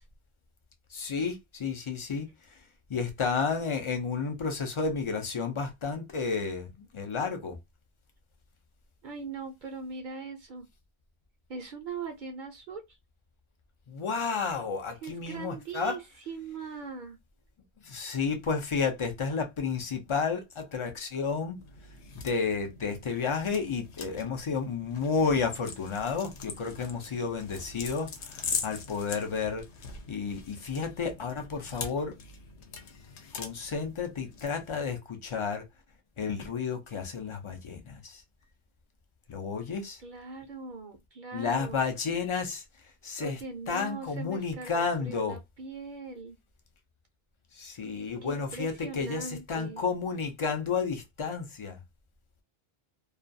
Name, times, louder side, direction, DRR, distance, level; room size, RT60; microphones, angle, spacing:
voice 1, 0.9-2.6 2.9-7.6 13.9-16.0 17.8-21.6 22.2-29.6 30.1-32.2 33.3-35.6 36.2-38.2 39.3-40.0 41.3-42.6 43.0-43.4 43.7-45.4 47.5-51.8, left 5 dB, 50° left, 0.3 m, -31 dB
voice 2, 9.0-10.7 11.5-13.0 15.0-17.2 40.0-41.8 43.2-46.4 48.2-49.8, right 4 dB, 60° right, 0.6 m, -40 dB
sound 1, 21.6-34.9, left 5 dB, 80° left, 0.9 m, -42 dB
2.3 x 2.2 x 2.5 m
omnidirectional pair, 1.1 m